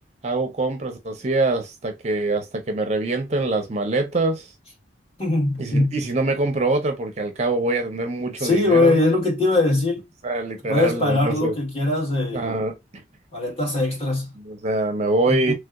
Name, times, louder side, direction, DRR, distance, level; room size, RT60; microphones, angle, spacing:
voice 1, 0.2-4.5 5.6-9.1 10.2-11.5 12.3-13.0 14.4-15.5, right 2 dB, 35° right, 0.5 m, -24 dB
voice 2, 5.2-6.0 8.4-10.0 10.7-12.6 13.3-14.3 15.3-15.5, left 2 dB, 30° left, 1.4 m, -21 dB
3.3 x 2.7 x 2.3 m
head